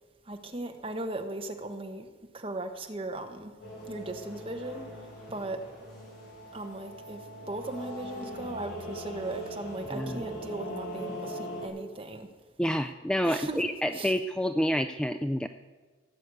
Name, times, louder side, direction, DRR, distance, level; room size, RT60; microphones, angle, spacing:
voice 1, 0.3-2.1 2.3-3.5 3.9-4.9 5.3-5.6 6.5-7.2 7.5-12.3 13.2-13.6 13.9-14.1, right 2 dB, 30° right, 5 dB, 1.2 m, -37 dB
sound 1, 3.6-11.7, equal, 55° left, 5.7 m, -40 dB
voice 2, 9.9-10.2 12.6-15.5, equal, 5° left, 8 dB, 0.3 m, -28 dB
17.0 x 7.9 x 8.3 m, 1.4 s
head